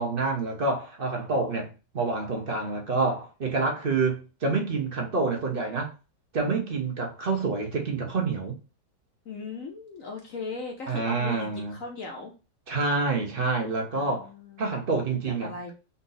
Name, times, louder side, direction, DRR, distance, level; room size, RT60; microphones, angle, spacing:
voice 1, 0.0-5.9 6.3-8.6 10.9-11.8 12.7-14.3 14.6-15.7, right 3 dB, 45° right, 0.8 m, -27 dB
voice 2, 9.3-12.3 13.9-14.8 15.4-15.7, left 3 dB, 60° left, 1.0 m, -38 dB
4.1 x 2.6 x 3.9 m
omnidirectional pair, 2.0 m